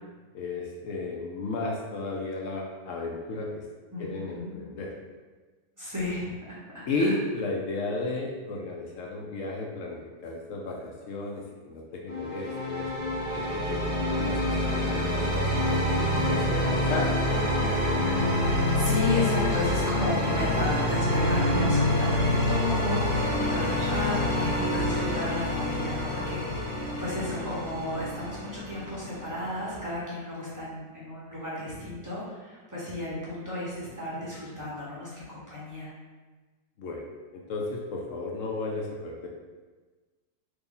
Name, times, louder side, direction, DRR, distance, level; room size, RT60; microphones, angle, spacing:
voice 1, 0.3-3.7 4.0-4.9 6.9-12.9 13.3-17.8 36.8-37.0 37.3-39.3, left 2 dB, 75° left, -1 dB, 0.7 m, -34 dB
voice 2, 3.9-4.6 5.8-6.3 6.7-7.1 18.3-35.9, left 1 dB, 20° right, -9 dB, 0.5 m, -33 dB
sound 1, 12.1-29.8, left 1 dB, 40° left, 0.7 m, -27 dB
3.2 x 2.5 x 3.7 m, 1.3 s
omnidirectional pair, 1.8 m